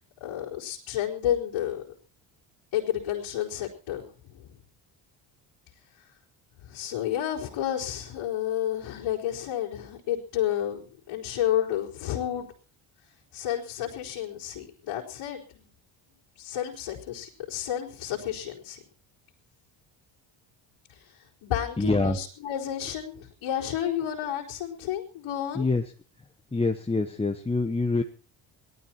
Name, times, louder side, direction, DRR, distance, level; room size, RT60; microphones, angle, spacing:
voice 1, 0.2-1.8 2.7-4.5 6.6-12.5 13.3-15.7 16.4-18.8 20.9-25.6, left 11 dB, 75° left, -6 dB, 3.9 m, -31 dB
voice 2, 21.8-22.2 25.5-25.8 26.5-28.0, left 3 dB, 10° left, 5 dB, 1.2 m, -25 dB
18.0 x 12.5 x 4.4 m, 0.37 s
cardioid pair, 95°, 49 cm